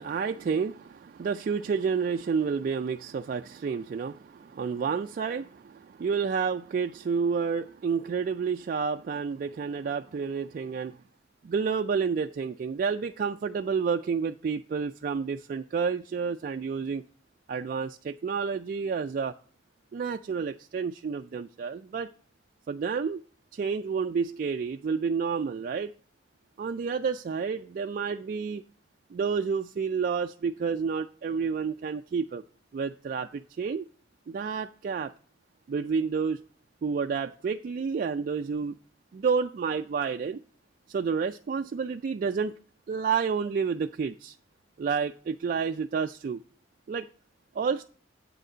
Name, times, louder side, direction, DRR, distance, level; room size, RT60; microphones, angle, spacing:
voice 1, 0.0-10.9 11.4-17.0 17.5-19.3 19.9-22.1 22.7-23.2 23.5-25.9 26.6-28.6 29.1-32.4 32.7-33.8 34.3-35.1 35.7-36.4 36.8-38.8 39.1-40.4 40.9-42.5 42.9-44.3 44.8-46.4 46.9-47.1 47.6-47.8, right 5 dB, 45° right, 0.3 m, -30 dB
8.2 x 6.6 x 3.8 m
head